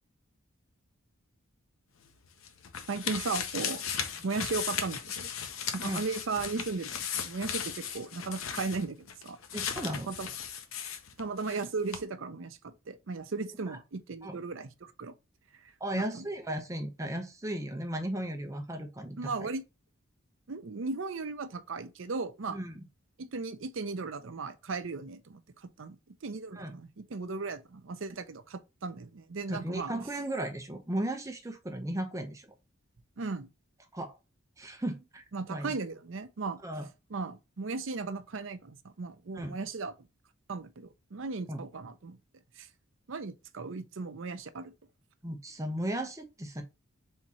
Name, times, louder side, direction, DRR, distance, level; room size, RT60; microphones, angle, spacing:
sound 1, 2.0-11.7 11.9-12.0, left 7 dB, 70° left, 0.7 m, -37 dB
voice 1, 2.9-3.8 4.2-5.3 5.7-9.4 10.1-10.3 11.2-15.1 15.6-16.2 19.2-19.6 20.5-22.6 23.2-26.0 26.2-29.9 33.2-33.5 35.3-36.6 37.1-39.9 40.5-42.2 42.6-42.7 43.1-44.7, right 4 dB, 60° right, 0.6 m, -36 dB
voice 2, 9.5-10.1 14.2-14.4 15.8-19.5 22.5-22.8 26.5-26.7 29.5-32.5 33.9-34.2 34.6-35.2 35.5-35.7 36.6-36.9 39.3-39.6 41.5-41.6 45.2-46.6, right 1 dB, 15° right, 0.6 m, -35 dB
3.6 x 2.9 x 4.2 m
head